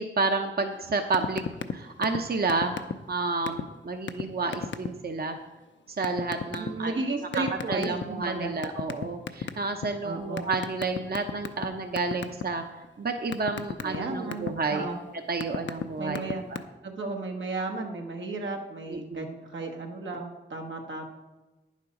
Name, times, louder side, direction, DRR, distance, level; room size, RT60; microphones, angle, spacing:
voice 1, 0.0-1.4 1.7-2.8 3.1-5.4 5.9-7.0 7.4-12.6 13.0-14.9 15.3-16.2 16.5-16.6 18.9-19.3, right 3 dB, 55° right, 5 dB, 0.7 m, -30 dB
sound 1, 1.1-1.7 2.0-2.2 2.5-3.1 3.5-3.6 4.1-4.2 4.5-4.9 6.0-6.7 7.3-8.2 8.6-9.9 10.4-11.7 12.0-12.4 12.8-14.5 15.1-15.8 16.1-16.6, left 7 dB, 75° left, 0.6 m, -31 dB
voice 2, 6.5-8.5 10.0-10.5 13.8-15.0 16.0-16.5 16.8-21.0, right 3 dB, 90° right, 2 dB, 1.3 m, -34 dB
9.8 x 7.3 x 5.2 m, 1.1 s
wide cardioid pair, 75°, 19 cm